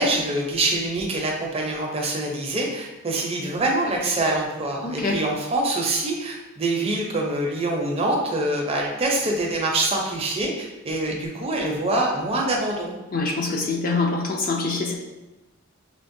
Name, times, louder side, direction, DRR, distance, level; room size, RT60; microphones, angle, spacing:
voice 1, 0.0-12.9, right 2 dB, 25° right, 0 dB, 0.5 m, -25 dB
voice 2, 4.8-5.2 13.1-14.9, left 3 dB, 40° left, 1 dB, 0.4 m, -25 dB
5.7 x 2.0 x 2.6 m, 1.1 s
head